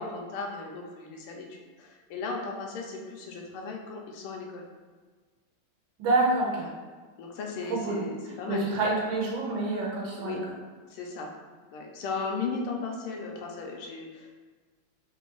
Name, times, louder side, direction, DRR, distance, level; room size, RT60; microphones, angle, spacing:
voice 1, 0.0-4.6 6.6-6.7 7.2-8.7 10.1-10.4 10.9-11.3 11.7-14.3, left 4 dB, 85° left, 0 dB, 1.5 m, -36 dB
voice 2, 6.0-6.5 7.7-8.0 8.5-10.4, right 2 dB, 70° right, -3 dB, 1.4 m, -27 dB
3.9 x 2.5 x 3.7 m, 1.4 s
omnidirectional pair, 2.4 m